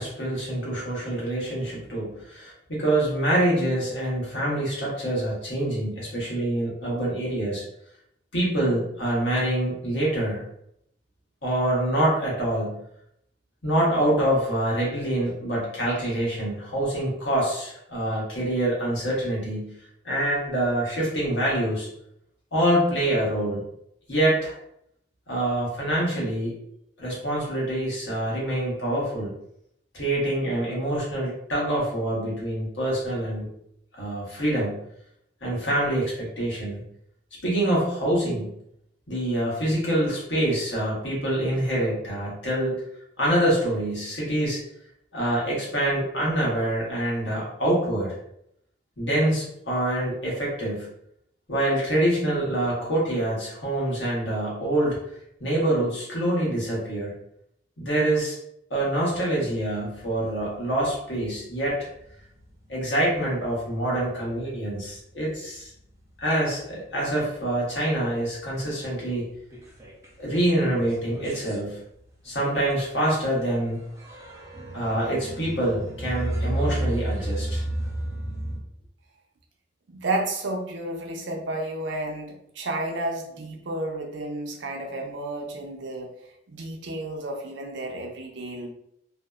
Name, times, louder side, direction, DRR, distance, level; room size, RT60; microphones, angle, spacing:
voice 1, 0.0-7.6 8.3-10.5 11.4-12.8 13.6-19.7 20.0-21.9 22.5-23.6 24.1-24.5 25.3-26.5 27.0-29.3 29.9-33.5 33.9-34.8 35.4-36.8 37.4-38.5 39.1-42.8 43.2-44.6 45.1-48.2 49.0-50.9 51.5-55.0 55.4-57.2 57.8-58.4 58.7-61.9 62.7-65.7 66.2-69.3 70.2-71.8 72.2-73.8 74.7-77.6, right 1 dB, 80° left, -5 dB, 1.1 m, -25 dB
sound 1, 59.1-65.7 66.1-67.2 67.6-67.7 68.0-68.1 68.4-70.2 70.6-78.6, right 1 dB, 15° right, 0.4 m, -34 dB
voice 2, 79.9-86.1 86.5-88.7, right 2 dB, 75° right, 1 dB, 0.5 m, -31 dB
2.6 x 2.0 x 2.3 m, 0.75 s
head